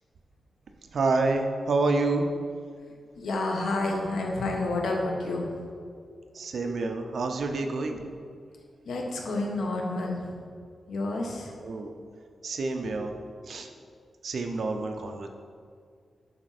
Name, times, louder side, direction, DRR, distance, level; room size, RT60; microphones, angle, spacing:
voice 1, 0.9-2.3 6.3-8.0 11.6-11.9 12.4-13.1 13.5-13.7 14.2-15.3, right 3 dB, 65° right, 5 dB, 0.7 m, -28 dB
voice 2, 3.2-5.5 6.0-6.2 6.6-6.9 8.8-10.4 10.9-11.5, left 2 dB, 90° left, 0 dB, 1.2 m, -30 dB
11.5 x 4.4 x 4.2 m, 2.2 s
wide cardioid pair, 115°, 0 cm